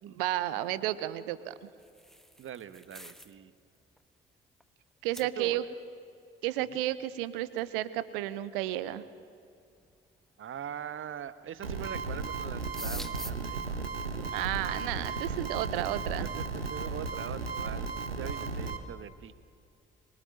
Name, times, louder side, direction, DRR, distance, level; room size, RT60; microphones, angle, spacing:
voice 1, 0.1-1.5 5.0-5.6 6.4-9.0 14.3-16.3, right 14 dB, 70° right, 16 dB, 1.2 m, -32 dB
sound 1, 1.6-3.4 3.7-4.0 4.6-4.7 5.1-5.3 7.6-7.7 8.7-8.8 9.5-9.9 11.2-11.6 11.9-12.1 12.4-13.3, equal, ahead, 1.4 m, -45 dB
voice 2, 2.4-3.5 5.4-5.6 6.7-6.8 10.4-13.6 14.4-14.5 16.2-16.4 16.7-19.3, right 9 dB, 45° right, 14 dB, 1.4 m, -42 dB
sound 2, 11.6-18.8, right 4 dB, 85° right, 1.4 m, -35 dB
26.5 x 24.0 x 9.1 m, 2.4 s
figure-of-eight pair, 45°, 29 cm